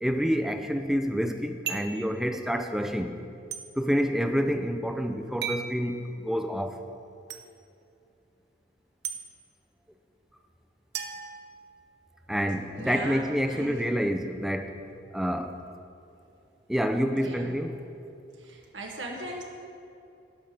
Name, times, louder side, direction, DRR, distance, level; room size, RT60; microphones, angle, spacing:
voice 1, 0.0-3.1 3.8-6.8 12.3-14.8 15.1-15.6 16.7-17.8, equal, ahead, 6 dB, 0.5 m, -28 dB
sound 1, 1.7-2.0 3.5-3.6 5.4-5.7 7.3-7.4 9.0-9.2 10.9-12.0, right 7 dB, 60° right, 0.8 m, -35 dB
voice 2, 12.7-13.8 17.1-17.5 18.4-19.4, right 1 dB, 90° right, -1 dB, 1.3 m, -38 dB
12.5 x 5.8 x 6.6 m, 2.6 s
head